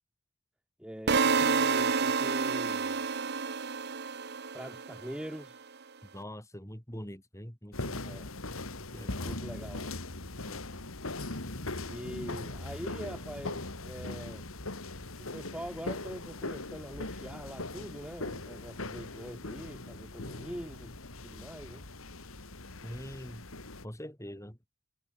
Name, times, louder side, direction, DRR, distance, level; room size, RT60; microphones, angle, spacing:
voice 1, 0.8-3.0 4.5-5.7 8.0-8.3 9.1-10.0 11.9-14.5 15.2-21.8, equal, 5° right, 2.5 m, -43 dB
sound 1, 1.1-5.1, right 5 dB, 50° right, 1.0 m, -29 dB
voice 2, 6.1-8.0 8.9-9.4 10.4-10.8 22.8-23.5 23.8-24.6, equal, 15° left, 5.0 m, -44 dB
sound 2, 7.7-23.9, left 2 dB, 80° left, 2.9 m, -40 dB
head